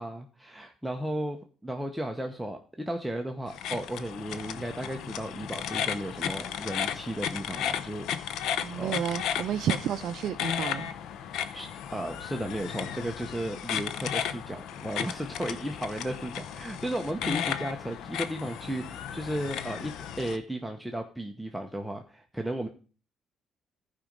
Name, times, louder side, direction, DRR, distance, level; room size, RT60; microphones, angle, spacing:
voice 1, 0.0-8.0 8.8-9.0 11.5-22.7, right 1 dB, 5° right, 0.9 m, -35 dB
sound 1, 3.5-20.4, left 9 dB, 85° left, 0.7 m, -34 dB
voice 2, 8.6-10.9, right 10 dB, 70° right, 0.4 m, -31 dB
14.5 x 5.1 x 5.2 m
cardioid pair, 115°, 0 cm